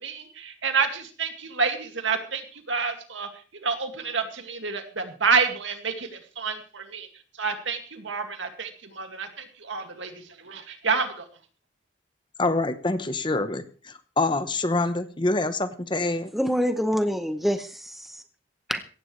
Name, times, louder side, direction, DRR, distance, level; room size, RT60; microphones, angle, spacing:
voice 1, 0.0-3.3 3.6-7.1 7.4-10.1 10.4-11.3, right 5 dB, 70° right, 6 dB, 2.2 m, -28 dB
voice 2, 12.4-16.3, left 2 dB, 25° left, 10 dB, 1.0 m, -26 dB
voice 3, 16.3-18.2 18.7-18.8, equal, ahead, 8 dB, 0.8 m, -26 dB
17.0 x 16.0 x 3.3 m, 0.37 s
head